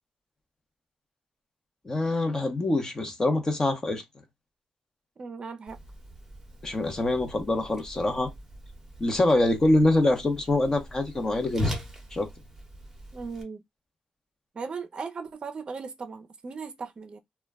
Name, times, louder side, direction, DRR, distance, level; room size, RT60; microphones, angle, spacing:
voice 1, 1.8-4.0 6.6-8.3 9.0-11.8 12.1-12.3, left 2 dB, 25° left, 0.8 m, -25 dB
voice 2, 5.2-5.8 13.1-13.6 14.5-17.2, right 5 dB, 40° right, 0.6 m, -37 dB
Whoosh swoosh swish, 5.7-13.4, left 1 dB, 10° right, 0.9 m, -39 dB
2.2 x 2.1 x 3.4 m
wide cardioid pair, 125°, 2 cm